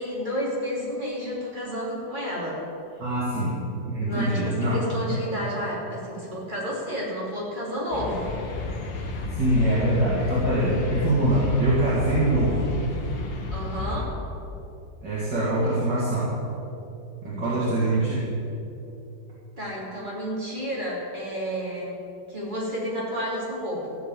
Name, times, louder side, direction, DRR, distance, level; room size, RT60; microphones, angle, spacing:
voice 1, 0.0-2.6 4.0-8.3 13.5-14.1 17.2-17.7 19.6-21.9 22.3-24.0, equal, 25° right, -6 dB, 3.5 m, -31 dB
voice 2, 3.0-3.6 3.9-4.7 9.3-12.7 15.0-16.4 17.2-18.2, right 1 dB, 70° right, -9 dB, 3.0 m, -23 dB
sound 1, 7.9-14.1, left 3 dB, 85° left, 2.0 m, -32 dB
15.0 x 5.6 x 9.1 m, 2.8 s
omnidirectional pair, 1.9 m